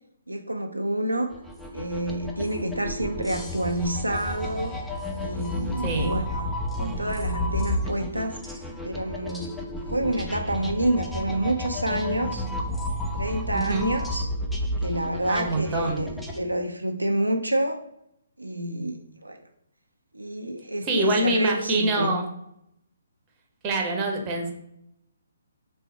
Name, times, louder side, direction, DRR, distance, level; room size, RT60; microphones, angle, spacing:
voice 1, 0.3-1.3 1.7-4.8 5.2-6.5 6.8-8.5 8.8-9.5 9.9-12.5 13.1-14.3 14.8-17.8 18.4-19.4 20.1-22.2, right 1 dB, 85° right, 4 dB, 0.5 m, -28 dB
sound 1, 1.3-16.4, left 1 dB, ahead, 0.4 m, -31 dB
voice 2, 13.5-13.9 15.3-16.0 20.8-22.3 23.6-24.5, right 2 dB, 25° right, 2 dB, 0.8 m, -25 dB
3.3 x 3.1 x 4.6 m, 0.75 s
figure-of-eight pair, 135°, 0 cm